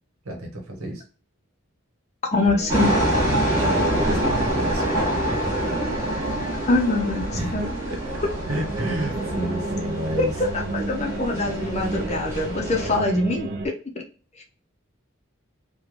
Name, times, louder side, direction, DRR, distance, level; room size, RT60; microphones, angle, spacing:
voice 1, 0.2-1.0 3.3-5.6 7.3-8.2 8.5-10.4, right 1 dB, 85° right, 2 dB, 1.0 m, -31 dB
voice 2, 2.3-3.0 6.7-7.7 10.2-10.3 10.5-13.7 14.4-14.5, left 2 dB, 30° left, 2 dB, 0.5 m, -24 dB
sound 1, 2.3-13.7, right 3 dB, 50° right, 0.4 m, -33 dB
sound 2, 2.7-13.0, right 1 dB, 15° right, 1.0 m, -26 dB
3.1 x 2.2 x 2.4 m, 0.38 s
head